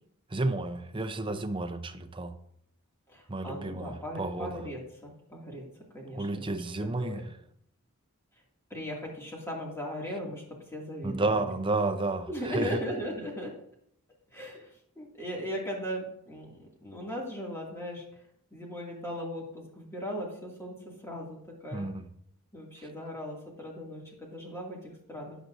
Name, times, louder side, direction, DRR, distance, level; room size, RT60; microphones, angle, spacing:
voice 1, 0.3-2.3 3.3-4.6 6.1-7.2 11.0-12.8 21.7-22.1, right 2 dB, 20° right, 0.6 m, -31 dB
voice 2, 3.1-5.6 5.9-6.5 6.8-7.3 8.7-10.4 10.7-11.5 12.3-13.5 14.3-18.0 18.5-20.8 21.0-21.9 22.5-25.4, equal, 10° left, 2.3 m, -38 dB
13.0 x 9.1 x 2.6 m
head